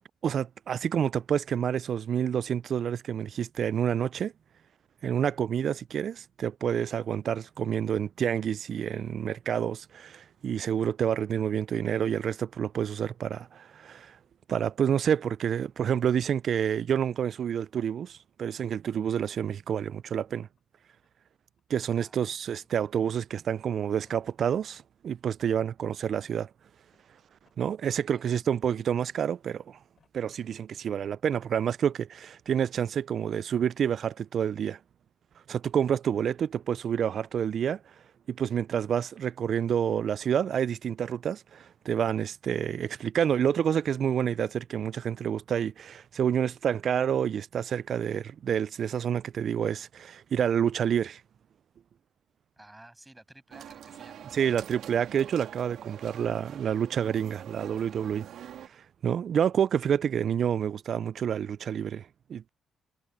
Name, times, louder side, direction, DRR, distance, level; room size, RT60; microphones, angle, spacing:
voice 1, 0.2-4.3 5.0-14.2 14.5-20.5 21.7-26.5 27.6-29.8 30.1-34.8 35.5-37.8 38.3-51.2 54.3-58.3 58.7-62.5, right 8 dB, 60° right, 0.3 m, -28 dB
sound 1, 18.6-19.5 20.0-20.6 21.0-21.6 22.0-22.2 22.7-22.9 23.9-24.5 25.6-25.7 26.7-27.7 28.1-28.2 28.9-29.3 29.8-30.1 30.7-30.8 31.0-31.5, left 6 dB, 50° left, 7.1 m, -71 dB
voice 2, 21.9-22.7 28.1-28.6 52.6-54.5, right 1 dB, 10° right, 7.4 m, -54 dB
sound 2, 53.5-58.7, right 10 dB, 75° right, 2.6 m, -45 dB
cardioid pair, 90°, 0 cm